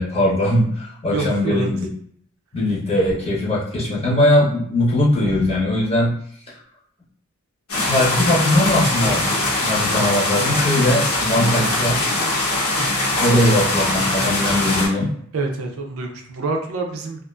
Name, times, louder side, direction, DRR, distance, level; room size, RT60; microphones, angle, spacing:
voice 1, 0.0-1.9 2.5-6.2 6.5-6.6 7.8-9.3 9.6-12.0 13.2-15.1, left 1 dB, 30° left, -5 dB, 0.9 m, -20 dB
voice 2, 1.1-1.8 13.3-13.5 15.3-17.2, right 3 dB, 70° right, 3 dB, 0.5 m, -26 dB
sound 1, 7.7-14.9, left 2 dB, 80° left, 1.1 m, -21 dB
2.4 x 2.4 x 2.2 m, 0.63 s
head